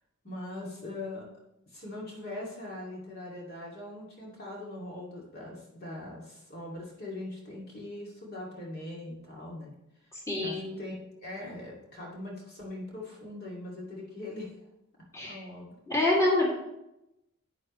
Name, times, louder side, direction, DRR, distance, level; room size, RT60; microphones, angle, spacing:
voice 1, 0.2-1.3 1.7-9.8 10.4-14.7 15.2-15.8, left 1 dB, 45° left, -3 dB, 2.6 m, -41 dB
voice 2, 10.1-10.7 15.1-15.4 15.9-16.5, left 2 dB, 15° left, -5 dB, 2.6 m, -26 dB
10.5 x 9.3 x 3.2 m, 0.87 s
head